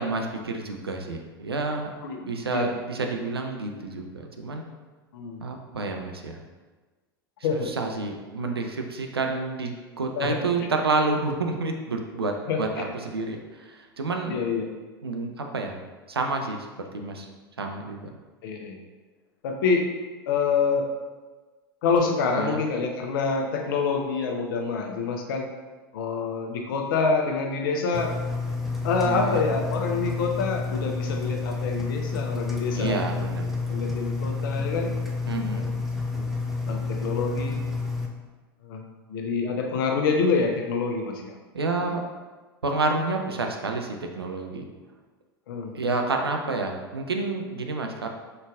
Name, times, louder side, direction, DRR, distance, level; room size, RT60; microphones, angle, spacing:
voice 1, 0.0-2.0 2.3-4.6 5.4-6.4 7.7-14.4 15.0-15.8 16.1-16.7 16.9-17.3 17.6-18.1 22.4-22.6 29.0-29.4 32.7-33.5 35.3-35.7 41.5-42.0 42.6-44.6 45.7-48.1, right 3 dB, 85° right, 3 dB, 0.5 m, -29 dB
voice 2, 2.0-2.7 5.1-5.4 7.4-7.7 10.2-10.7 12.5-12.9 14.3-14.7 18.4-18.8 19.4-19.9 20.3-20.9 21.8-25.5 25.9-28.2 28.8-33.1 33.7-35.0 35.5-35.7 36.1-36.3 36.7-37.6 38.6-41.3 41.8-41.9 45.5-45.7, left 4 dB, 60° left, 2 dB, 0.7 m, -27 dB
Engine, 27.9-38.1, left 3 dB, ahead, 0.6 m, -29 dB
5.4 x 3.9 x 2.3 m, 1.3 s
figure-of-eight pair, 85°, 13 cm